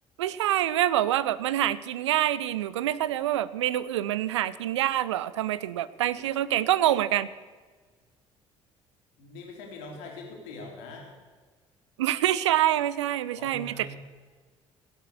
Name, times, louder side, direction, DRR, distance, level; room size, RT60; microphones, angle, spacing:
voice 1, 0.2-7.3 12.0-14.0, right 12 dB, 70° right, 17 dB, 0.5 m, -26 dB
voice 2, 9.2-11.1 13.3-14.0, left 2 dB, 65° left, 1 dB, 3.0 m, -42 dB
16.5 x 8.0 x 6.7 m, 1.4 s
figure-of-eight pair, 50°, 15 cm